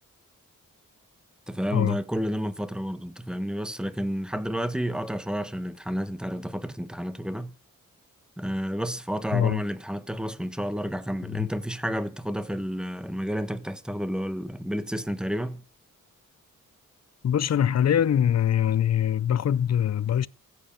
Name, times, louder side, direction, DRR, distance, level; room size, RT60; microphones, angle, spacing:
voice 1, 1.5-7.5 8.4-15.6, equal, ahead, 1.2 m, -30 dB
voice 2, 17.2-20.3, left 9 dB, 55° left, 0.6 m, -23 dB
16.0 x 7.5 x 6.9 m
cardioid pair, 65°, 32 cm